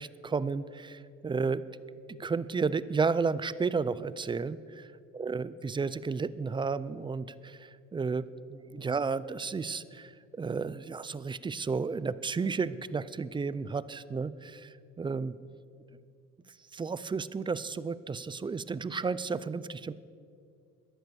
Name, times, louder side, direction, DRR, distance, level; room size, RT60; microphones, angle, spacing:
voice 1, 0.0-1.6 2.1-10.1 10.4-15.4 16.7-19.9, right 4 dB, 15° right, 17 dB, 0.4 m, -32 dB
13.5 x 10.5 x 6.8 m, 2.4 s
cardioid pair, 100°, 31 cm